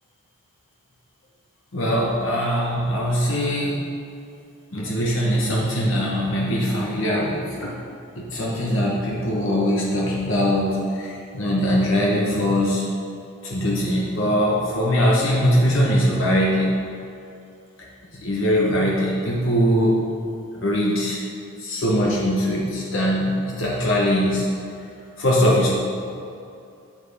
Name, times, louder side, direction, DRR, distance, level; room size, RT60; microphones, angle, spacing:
voice 1, 1.7-3.8 4.7-7.8 8.1-12.9 13.4-16.8 17.8-17.9 18.1-20.0 20.5-21.2 21.6-24.5 25.2-25.7, equal, 60° left, -4 dB, 1.1 m, -21 dB
10.5 x 7.4 x 3.5 m, 2.6 s
head